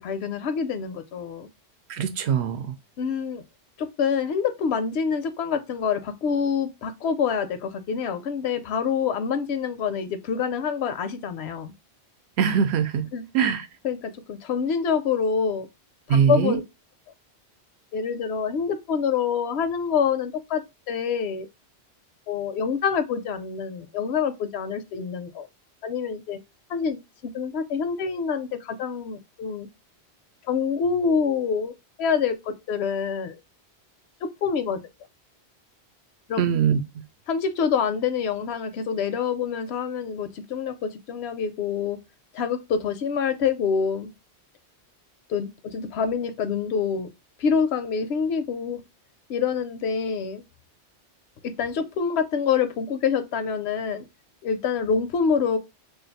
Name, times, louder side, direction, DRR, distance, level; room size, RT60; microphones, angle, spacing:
voice 1, 0.0-1.5 3.0-3.4 3.8-11.7 13.1-13.2 13.8-15.7 16.1-16.6 17.9-20.6 20.9-21.5 22.3-25.5 25.8-26.4 26.7-27.0 27.3-29.7 30.5-31.7 32.0-33.4 34.4-34.8 36.3-36.4 37.3-42.0 42.3-44.1 45.3-47.1 47.4-48.8 49.3-50.4 51.4-54.0 54.4-55.6, left 6 dB, 75° left, 0.8 m, -26 dB
voice 2, 1.9-2.7 12.4-13.0 13.3-13.7 16.1-16.6 36.4-36.8, right 7 dB, 75° right, 0.8 m, -22 dB
2.5 x 2.4 x 3.9 m
omnidirectional pair, 1.1 m